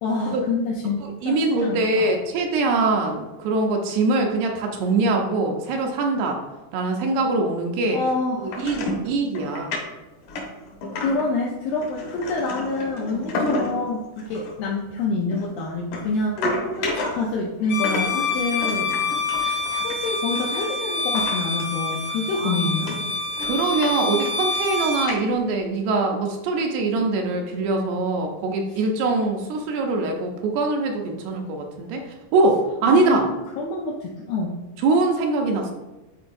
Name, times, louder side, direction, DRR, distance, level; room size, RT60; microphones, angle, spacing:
voice 1, 0.0-2.1 7.9-8.7 10.9-16.4 16.8-18.9 19.4-23.2 32.9-34.6, left 3 dB, 80° left, -2 dB, 2.1 m, -27 dB
voice 2, 1.0-6.4 6.7-8.0 8.4-9.8 13.1-13.3 19.0-19.1 22.4-22.7 23.4-32.0 32.3-33.2 34.8-35.7, right 3 dB, 80° right, 2 dB, 2.6 m, -23 dB
sound 1, 8.5-9.1 9.3-9.8 10.2-11.3 11.8-13.8 14.2-14.5 15.3-17.4 17.8-20.6 21.1-21.6 21.9-22.0 22.5-22.6 22.9-23.9 24.2-24.7 25.0-25.6, left 2 dB, 65° left, 2.1 m, -31 dB
Bowed string instrument, 17.6-25.1, left 3 dB, 45° left, 1.3 m, -26 dB
10.5 x 4.3 x 2.6 m, 1.1 s
omnidirectional pair, 5.0 m